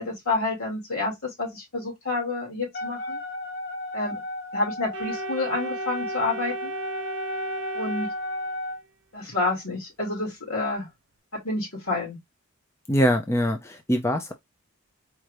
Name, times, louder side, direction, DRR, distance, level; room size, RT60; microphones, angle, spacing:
voice 1, 0.0-3.2 3.9-4.2 4.5-6.7 7.7-8.1 9.1-10.9 11.3-12.2, left 3 dB, 70° left, 2.5 m, -29 dB
Wind instrument woodwind instrument, 2.7-8.8, left 1 dB, 50° left, 1.0 m, -33 dB
Organ, 4.9-8.9, right 4 dB, 55° right, 0.7 m, -37 dB
voice 2, 12.9-14.3, equal, 10° left, 0.4 m, -23 dB
4.4 x 2.6 x 3.2 m
head